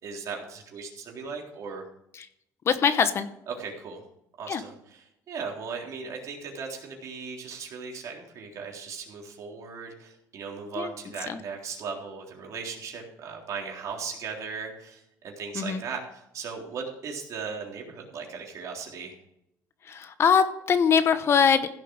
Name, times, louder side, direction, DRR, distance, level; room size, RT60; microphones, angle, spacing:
voice 1, 0.0-1.9 3.5-4.0 4.4-19.2, right 5 dB, 55° right, 0 dB, 3.6 m, -37 dB
voice 2, 2.7-3.3 4.5-4.6 10.8-10.9 11.3-11.4 15.5-15.8 19.9-21.7, left 6 dB, 40° left, 11 dB, 1.0 m, -22 dB
16.0 x 7.7 x 4.9 m, 0.79 s
cardioid pair, 135°, 7 cm